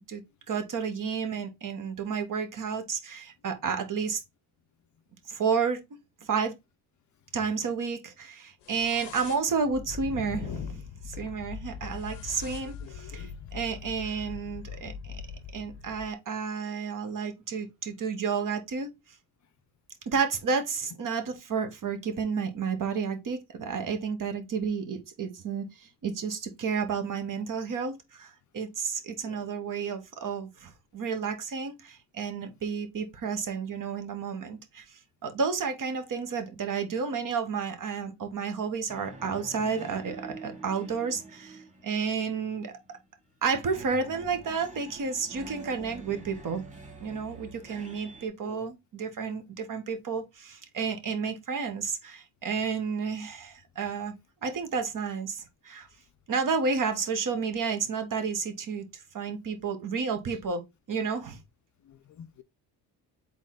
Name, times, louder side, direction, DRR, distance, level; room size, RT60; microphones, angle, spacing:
voice 1, 0.1-4.2 5.3-5.8 6.2-6.5 7.3-15.2 15.5-18.9 20.1-42.7 43.4-46.6 47.0-54.1 54.4-55.9 56.3-60.6 60.9-61.4, right 5 dB, 45° right, 1.3 m, -31 dB
sound 1, 8.6-16.1, left 6 dB, 80° left, 0.9 m, -41 dB
voice 2, 12.6-13.3 29.2-29.4 48.4-48.7 61.9-62.4, left 8 dB, 45° left, 0.6 m, -49 dB
sound 2, 38.9-43.0 43.5-48.3, right 2 dB, 15° right, 1.7 m, -46 dB
3.9 x 3.2 x 3.7 m
cardioid pair, 85°, 42 cm